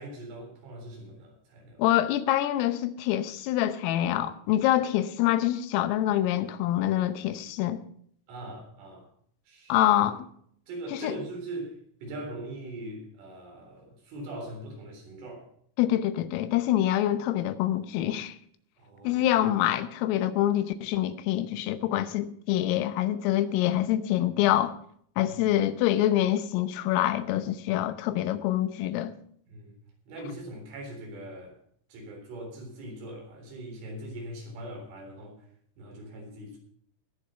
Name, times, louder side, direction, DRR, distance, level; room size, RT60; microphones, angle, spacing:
voice 1, 0.0-1.8 8.3-9.1 9.5-9.8 10.7-15.5 18.8-19.4 25.2-25.3 29.5-29.8 30.1-31.6 31.9-35.5 35.8-36.6, right 1 dB, 75° right, 1 dB, 6.3 m, -41 dB
voice 2, 1.8-7.8 9.7-10.3 10.9-11.2 15.8-18.4 19.1-24.8 25.2-29.1, left 13 dB, 90° left, 12 dB, 3.6 m, -26 dB
20.0 x 7.0 x 5.5 m, 0.63 s
omnidirectional pair, 5.8 m